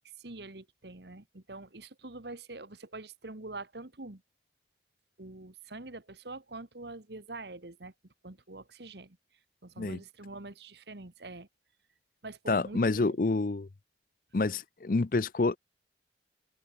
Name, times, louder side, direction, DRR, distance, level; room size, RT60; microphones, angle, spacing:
voice 1, 0.2-4.2 5.2-7.9 8.2-9.2 9.6-11.5 12.2-13.2, right 2 dB, 70° right, 1.7 m, -45 dB
voice 2, 12.5-13.7 14.3-15.6, left 3 dB, 50° left, 0.6 m, -28 dB
open air
head